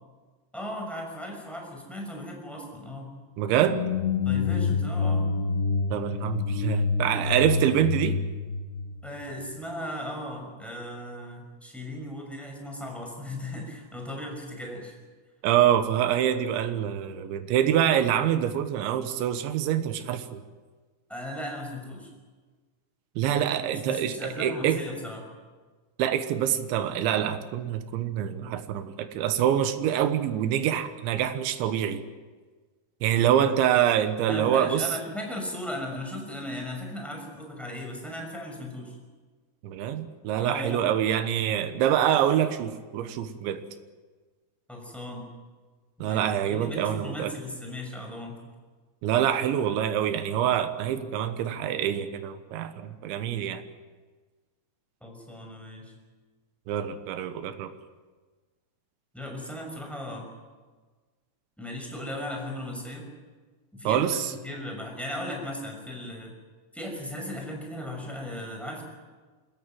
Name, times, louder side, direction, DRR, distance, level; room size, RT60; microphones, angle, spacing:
voice 1, 0.5-3.1 4.2-5.3 9.0-14.9 21.1-22.1 23.6-25.3 34.3-39.0 40.4-40.8 44.7-45.3 46.0-48.4 55.0-55.9 59.1-60.3 61.6-63.1 63.7-66.3 66.7-68.8, left 1 dB, ahead, 1 dB, 5.7 m, -37 dB
voice 2, 3.4-3.8 5.9-8.2 15.4-20.4 23.2-24.8 26.0-32.1 33.0-34.9 39.6-43.6 46.0-47.3 49.0-53.6 56.7-57.7 63.9-64.3, right 10 dB, 90° right, 9 dB, 3.5 m, -25 dB
sound 1, 3.5-9.6, left 4 dB, 70° left, 3.0 m, -27 dB
26.0 x 14.5 x 9.3 m, 1.4 s
omnidirectional pair, 5.1 m